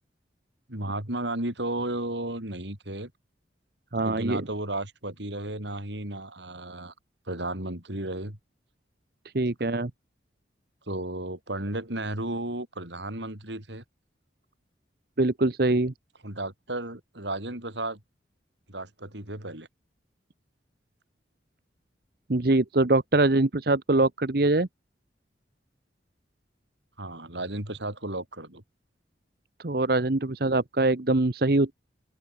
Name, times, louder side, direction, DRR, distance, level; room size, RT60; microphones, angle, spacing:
voice 1, 0.7-3.1 4.0-6.9 7.3-8.4 10.9-13.8 16.2-18.0 18.7-19.7 27.0-28.6, right 1 dB, 75° right, 5.9 m, -33 dB
voice 2, 3.9-4.4 9.3-9.9 15.2-15.9 22.3-24.7 29.6-31.7, right 2 dB, 55° right, 1.0 m, -23 dB
open air
head